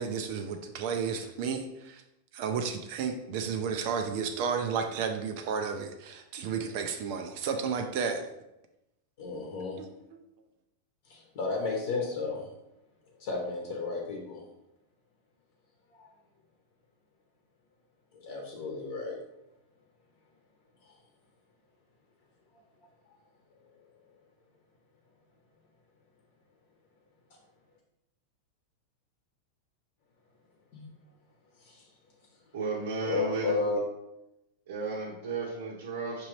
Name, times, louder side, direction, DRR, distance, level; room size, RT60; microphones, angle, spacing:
voice 1, 0.0-2.0 2.3-8.2, right 6 dB, 40° right, 5 dB, 0.4 m, -32 dB
voice 2, 9.2-9.8 11.0-12.5 13.2-14.4 15.9-16.1 18.1-19.2 20.8-21.0 22.5-22.6 27.3-27.4 30.7-30.9 31.5-31.9 33.0-33.8, left 4 dB, 50° left, 0 dB, 0.9 m, -33 dB
voice 3, 32.5-33.6 34.7-36.3, right 4 dB, 75° right, -5 dB, 0.9 m, -34 dB
6.0 x 2.8 x 3.1 m, 0.90 s
supercardioid pair, 175°, 0 cm